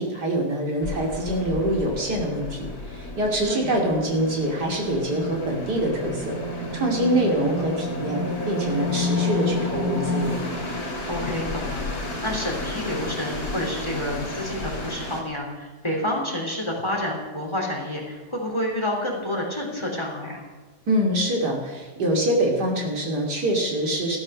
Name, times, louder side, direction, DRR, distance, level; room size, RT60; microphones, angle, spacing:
voice 1, 0.0-6.4 6.7-10.5 20.9-24.2, right 1 dB, 80° right, 0 dB, 3.5 m, -25 dB
sound 1, 0.8-15.2, left 2 dB, 65° left, 3.8 m, -30 dB
voice 2, 3.4-3.7 11.1-20.4, left 1 dB, 15° left, 0 dB, 3.4 m, -29 dB
15.5 x 13.0 x 6.4 m, 1.3 s
omnidirectional pair, 1.7 m